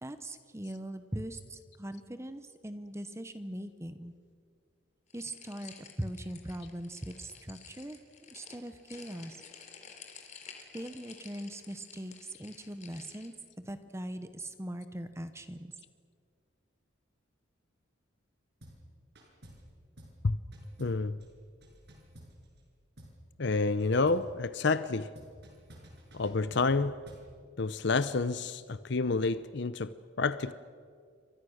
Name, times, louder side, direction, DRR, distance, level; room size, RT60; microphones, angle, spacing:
voice 1, 0.0-4.1 5.1-8.0 8.3-9.4 10.7-15.7, right 1 dB, 15° right, 1.0 m, -41 dB
sound 1, 5.1-13.3, left 6 dB, 40° left, 3.4 m, -52 dB
sound 2, 18.6-18.9 19.1-19.7 20.0-20.2 20.5-22.7 23.0-23.2 23.5-24.3 25.1-27.3, equal, 60° right, 6.6 m, -53 dB
voice 2, 20.8-21.2 23.4-25.1 26.1-27.0 27.6-29.9 30.2-30.5, left 3 dB, 60° left, 0.7 m, -29 dB
29.0 x 25.0 x 6.5 m
head